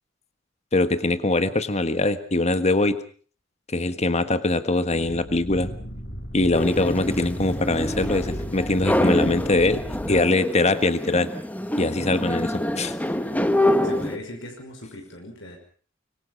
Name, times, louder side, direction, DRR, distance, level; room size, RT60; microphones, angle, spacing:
voice 1, 0.7-3.0 3.7-5.7 6.3-9.8 10.1-11.3 11.8-12.9, left 2 dB, 35° left, 12 dB, 1.5 m, -22 dB
sound 1, 4.9-10.2, equal, 55° left, 3.3 m, -35 dB
sound 2, 6.5-14.2, left 1 dB, 10° left, 1.5 m, -26 dB
voice 2, 13.8-15.6, left 1 dB, 75° left, 2 dB, 5.7 m, -39 dB
25.5 x 22.5 x 5.5 m, 0.43 s
head